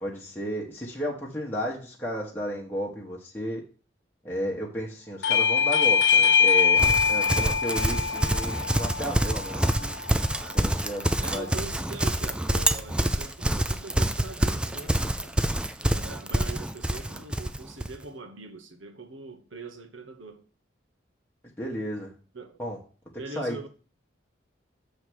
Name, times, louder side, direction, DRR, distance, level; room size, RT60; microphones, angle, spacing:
voice 1, 0.0-3.6 4.2-6.8 7.1-9.9 10.4-11.5 21.6-22.1 22.6-22.8 23.4-23.7, equal, 10° left, 1.2 m, -33 dB
Bell / Doorbell, 5.2-10.4, left 6 dB, 70° left, 0.4 m, -23 dB
Livestock farm animals working animals, 6.8-18.0, right 1 dB, 5° right, 0.3 m, -26 dB
voice 2, 11.2-15.4 15.8-20.4 22.3-22.6 23.2-23.7, right 3 dB, 85° right, 1.2 m, -42 dB
7.5 x 3.4 x 6.2 m
head